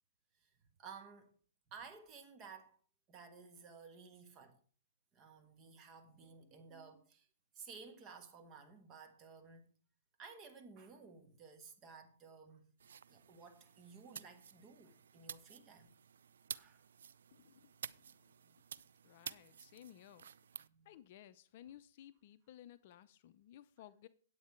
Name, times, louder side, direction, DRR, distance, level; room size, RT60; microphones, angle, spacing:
voice 1, 0.8-1.4 1.7-2.8 3.1-4.6 5.1-7.3 7.5-9.7 10.2-12.7 13.1-15.9 16.5-16.8 20.6-20.9, right 5 dB, 25° right, 1.3 m, -55 dB
sound 1, 12.8-20.7, right 7 dB, 80° right, 0.4 m, -52 dB
voice 2, 17.3-18.0 18.4-18.6 19.0-20.3 20.8-24.1, left 11 dB, 45° left, 0.6 m, -58 dB
9.5 x 8.4 x 4.6 m
hypercardioid pair, 155°, 0 cm